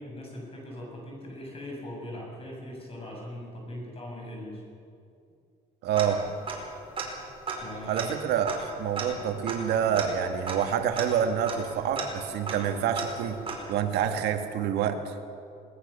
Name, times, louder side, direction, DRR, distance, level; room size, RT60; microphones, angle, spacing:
voice 1, 0.0-4.6 7.6-8.1, left 1 dB, 35° left, -2 dB, 7.3 m, -40 dB
voice 2, 5.8-6.2 7.8-13.4 13.7-15.2, right 8 dB, 80° right, 5 dB, 2.0 m, -27 dB
Tick-tock, 6.0-6.7 7.0-7.1 7.4-13.9, right 4 dB, 35° right, 4.9 m, -36 dB
20.5 x 19.5 x 7.0 m, 2.5 s
cardioid pair, 110°, 17 cm